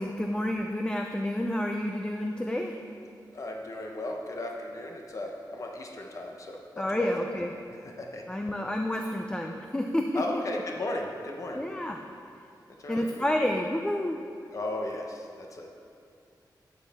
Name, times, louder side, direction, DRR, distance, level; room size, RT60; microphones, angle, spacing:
voice 1, 0.0-2.8 6.8-7.5 8.3-10.4 11.5-12.0 12.9-14.2, left 1 dB, 10° left, 3 dB, 0.5 m, -29 dB
voice 2, 3.3-7.3 7.7-8.2 10.1-11.6 12.8-13.2 14.5-15.7, left 1 dB, 45° left, 1 dB, 1.0 m, -36 dB
12.0 x 9.1 x 3.6 m, 2.4 s
wide cardioid pair, 150°, 8 cm